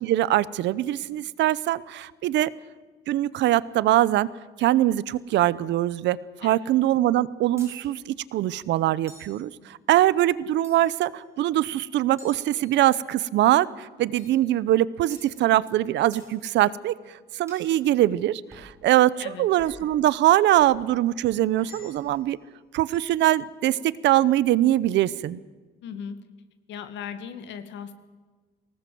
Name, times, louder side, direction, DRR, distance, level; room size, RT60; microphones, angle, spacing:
voice 1, 0.0-2.5 3.1-4.3 4.6-16.9 17.4-22.4 22.7-25.4, right 14 dB, 80° right, 19 dB, 0.8 m, -22 dB
sound 1, 7.6-7.8 9.1-9.4 10.6-11.1 12.2-13.1 14.2-14.4 15.1-15.3 16.1-16.3 17.5-17.7 18.5-18.7 19.6-19.9 20.6-20.8 21.6-22.2, right 1 dB, 15° right, 6.7 m, -49 dB
voice 2, 25.8-26.2 26.7-27.9, left 7 dB, 85° left, 9 dB, 2.2 m, -37 dB
24.0 x 19.0 x 7.8 m, 1.3 s
cardioid pair, 160°, 18 cm